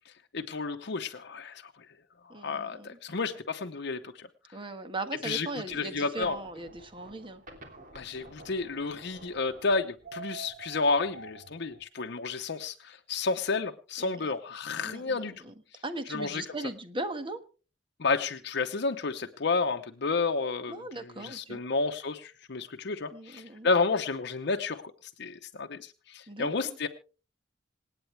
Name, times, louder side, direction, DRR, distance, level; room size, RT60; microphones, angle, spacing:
voice 1, 0.3-1.7 2.2-4.3 5.2-6.4 7.9-15.3 16.1-16.4 18.0-20.8 21.2-24.8 25.2-26.9, left 4 dB, 65° left, 6 dB, 0.8 m, -31 dB
voice 2, 2.3-3.0 4.5-7.4 14.0-14.3 14.8-15.5 15.8-17.4 20.7-21.6 23.1-23.7 26.3-26.8, right 2 dB, 30° right, 9 dB, 1.4 m, -39 dB
sound 1, 5.6-11.8, right 3 dB, 45° right, 3.1 m, -48 dB
26.5 x 9.0 x 3.3 m, 0.35 s
head